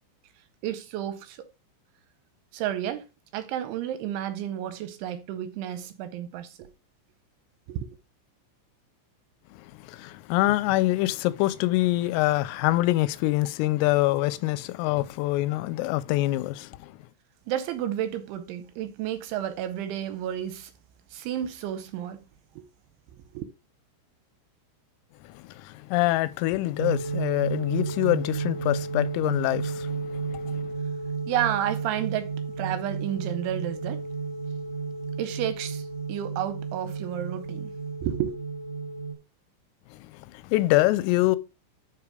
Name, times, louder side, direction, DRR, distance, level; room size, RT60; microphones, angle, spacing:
voice 1, 0.6-1.4 2.5-3.1 3.3-6.7 7.7-7.9 17.5-20.7 21.1-22.2 22.6-22.7 23.1-23.4 31.3-34.0 35.2-37.7 38.0-38.3, right 11 dB, 80° right, 2.9 m, -31 dB
voice 2, 9.5-16.9 25.3-30.5 40.0-41.4, left 17 dB, 85° left, 3.3 m, -25 dB
sound 1, 26.8-39.1, right 5 dB, 15° left, 2.9 m, -32 dB
12.0 x 5.1 x 5.0 m
omnidirectional pair, 5.9 m